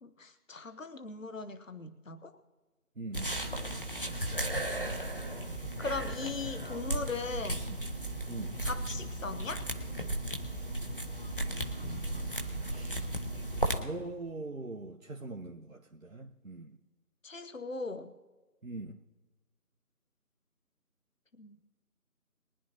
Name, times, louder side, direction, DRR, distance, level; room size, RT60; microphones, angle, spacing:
voice 1, 0.0-2.3 5.8-7.7 8.6-9.7 17.2-18.1 21.4-21.6, left 4 dB, 55° left, 10 dB, 1.0 m, -39 dB
voice 2, 3.0-3.4 7.7-7.8 8.3-8.6 12.6-13.1 13.3-16.8 18.6-19.0, right 2 dB, 60° right, 0 dB, 1.0 m, -42 dB
sound 1, 3.1-13.8, right 1 dB, 35° left, 1.1 m, -35 dB
22.5 x 9.9 x 2.9 m, 1.2 s
figure-of-eight pair, 180°, 45 cm